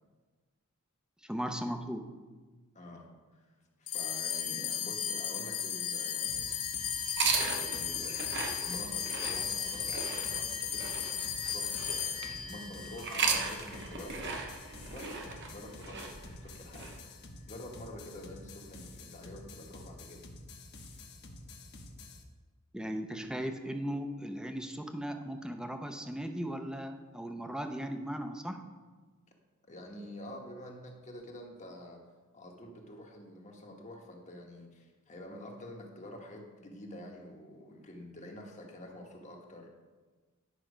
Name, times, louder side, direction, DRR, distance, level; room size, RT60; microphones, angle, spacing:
voice 1, 1.2-2.1 22.7-28.6, equal, 5° right, 6 dB, 0.6 m, -37 dB
voice 2, 2.7-3.5 3.8-6.6 7.5-8.3 8.6-11.2 11.5-14.3 14.9-17.0 17.5-20.3 20.8-20.9 29.7-32.0 32.3-39.7, left 1 dB, 35° left, 1 dB, 1.3 m, -47 dB
sound 1, 3.9-14.5, left 8 dB, 75° left, 1.0 m, -36 dB
sound 2, 6.2-22.2, left 2 dB, 50° left, 1.1 m, -49 dB
sound 3, 7.1-12.4 12.9-17.0, right 4 dB, 55° right, 1.1 m, -36 dB
9.9 x 5.9 x 5.0 m, 1.3 s
head